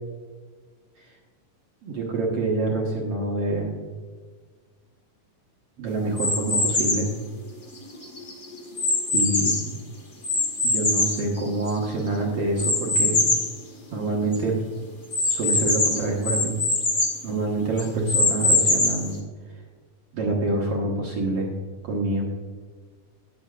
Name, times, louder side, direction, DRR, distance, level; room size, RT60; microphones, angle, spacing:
voice 1, 1.8-3.7 5.8-7.1 9.1-9.6 10.6-13.2 13.9-14.6 15.3-16.6 17.2-19.2 20.1-21.5 21.8-22.2, right 2 dB, 55° right, -2 dB, 2.0 m, -26 dB
sound 1, 6.2-7.1 7.7-9.8 10.2-11.9 12.6-13.5 14.0-14.1 14.3-14.4 15.1-17.2 17.8-19.1, left 2 dB, 75° left, 0.6 m, -23 dB
18.0 x 7.2 x 2.4 m, 1.5 s
omnidirectional pair, 4.1 m